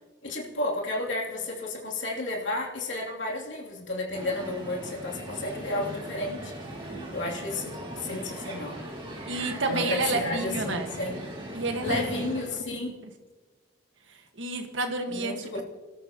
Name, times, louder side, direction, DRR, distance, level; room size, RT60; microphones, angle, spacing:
voice 1, 0.2-6.5 6.8-8.8 9.7-11.2 11.8-12.9 15.1-15.6, left 2 dB, 75° left, -2 dB, 2.9 m, -32 dB
Crowd, 4.1-12.4, right 1 dB, 25° right, 2.5 m, -39 dB
voice 2, 9.3-10.9 11.5-12.6 14.3-15.6, right 2 dB, 75° right, 4 dB, 1.5 m, -30 dB
26.0 x 13.0 x 2.9 m, 1.3 s
head